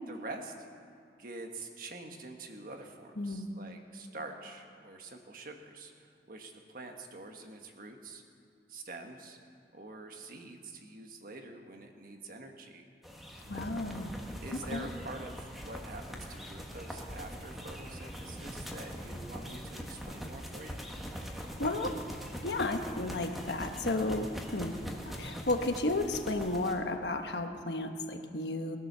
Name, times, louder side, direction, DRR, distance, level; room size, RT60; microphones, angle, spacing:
voice 1, 0.1-0.5 1.2-8.2 8.7-9.4 9.7-12.9 14.4-20.8, right 2 dB, 50° right, 4 dB, 1.5 m, -46 dB
voice 2, 3.2-3.5 13.5-14.1 14.7-14.9 21.6-21.9 22.4-24.8 25.0-28.8, left 2 dB, 70° left, 5 dB, 1.3 m, -33 dB
sound 1, 13.0-26.7, equal, ahead, 1.4 m, -42 dB
19.5 x 11.0 x 6.8 m, 2.4 s
head